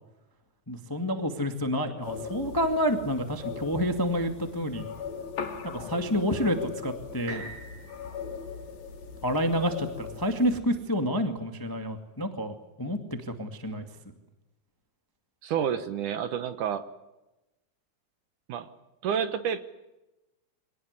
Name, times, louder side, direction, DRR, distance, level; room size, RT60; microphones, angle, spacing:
voice 1, 0.7-4.8 5.6-7.4 9.2-13.8, equal, 15° left, 6 dB, 0.6 m, -29 dB
sound 1, 2.0-10.6, left 6 dB, 70° left, 4.1 m, -39 dB
sound 2, 7.3-11.2 11.8-11.9, right 3 dB, 85° right, 8.5 m, -47 dB
voice 2, 15.4-16.8 18.5-18.7 19.0-19.6, right 8 dB, 65° right, 11 dB, 2.3 m, -29 dB
25.0 x 18.5 x 9.7 m, 1.0 s
omnidirectional pair, 4.4 m